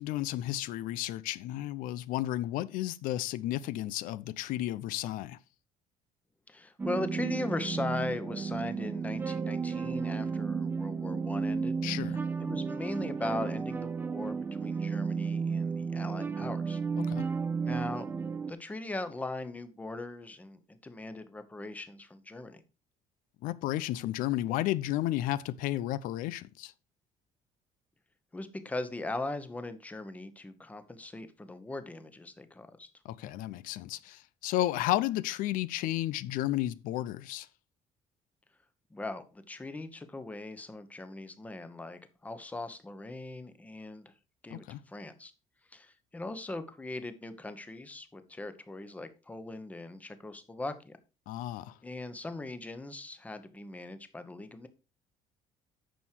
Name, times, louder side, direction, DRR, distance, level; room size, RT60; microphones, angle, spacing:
voice 1, 0.0-5.4 11.8-12.2 17.1-17.3 23.4-26.7 33.0-37.5 44.5-44.8 51.3-51.8, left 14 dB, 90° left, 0.6 m, -32 dB
voice 2, 6.5-11.8 12.4-16.8 17.6-18.1 18.5-22.6 28.3-32.9 38.9-44.1 44.4-45.3 45.7-51.0 51.8-54.7, left 2 dB, 10° left, 0.9 m, -39 dB
sound 1, 6.8-18.5, right 5 dB, 15° right, 0.5 m, -33 dB
9.2 x 6.3 x 4.5 m
cardioid pair, 165°, 14 cm